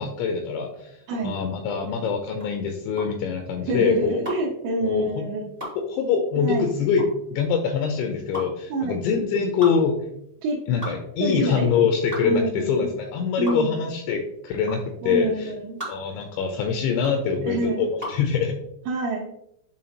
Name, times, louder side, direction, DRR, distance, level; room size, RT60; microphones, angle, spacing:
voice 1, 0.0-4.2 4.8-5.3 5.8-7.0 7.3-10.0 10.7-15.5 15.9-18.6, left 6 dB, 85° left, 4 dB, 2.7 m, -24 dB
sound 1, 1.0-18.3, equal, 35° right, 0.6 m, -38 dB
voice 2, 3.7-5.5 6.4-6.8 8.7-9.0 10.4-10.6 11.2-11.7 12.2-12.9 13.4-13.8 15.0-15.8 17.4-17.9 18.9-19.3, right 2 dB, 75° right, -2 dB, 2.8 m, -27 dB
10.5 x 3.5 x 2.9 m, 0.79 s
omnidirectional pair, 5.6 m